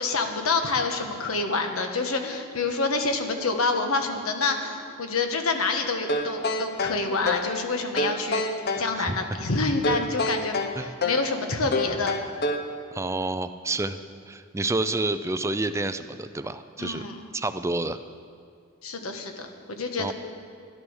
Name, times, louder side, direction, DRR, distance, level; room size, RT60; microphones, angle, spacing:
voice 1, 0.0-12.1 16.8-17.2 18.8-20.1, left 3 dB, 75° left, 5 dB, 1.3 m, -27 dB
sound 1, 6.1-7.5 8.0-8.9 9.8-11.3 11.7-12.7, left 2 dB, 45° left, 0.8 m, -27 dB
voice 2, 12.9-14.0 14.3-17.1 17.3-18.0 20.0-20.1, right 2 dB, 15° right, 11 dB, 0.4 m, -29 dB
12.5 x 11.5 x 6.4 m, 2.3 s
head